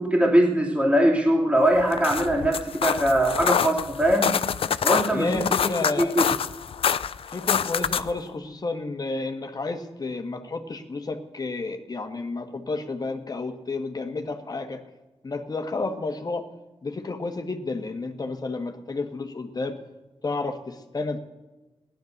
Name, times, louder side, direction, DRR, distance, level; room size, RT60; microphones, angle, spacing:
voice 1, 0.0-4.3 4.8-5.3 6.0-6.3, right 1 dB, 10° right, -2 dB, 2.8 m, -21 dB
sound 1, 1.8-8.2, left 7 dB, 65° left, 0.5 m, -26 dB
voice 2, 5.1-6.1 7.3-14.8 15.2-16.5 16.8-19.8 20.2-21.2, left 3 dB, 40° left, 7 dB, 1.6 m, -31 dB
16.5 x 11.5 x 6.6 m, 1.2 s
cardioid pair, 80°, 10 cm